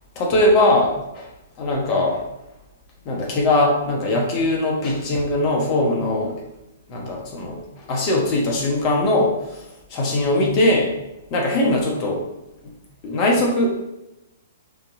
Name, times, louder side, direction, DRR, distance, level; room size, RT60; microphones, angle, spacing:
voice 1, 0.1-1.3 1.6-2.2 3.0-6.3 6.9-9.6 9.9-10.9 11.3-12.2 13.0-13.7, left 1 dB, 40° left, -1 dB, 1.3 m, -20 dB
6.1 x 3.1 x 2.7 m, 0.90 s
hypercardioid pair, 120°, 0 cm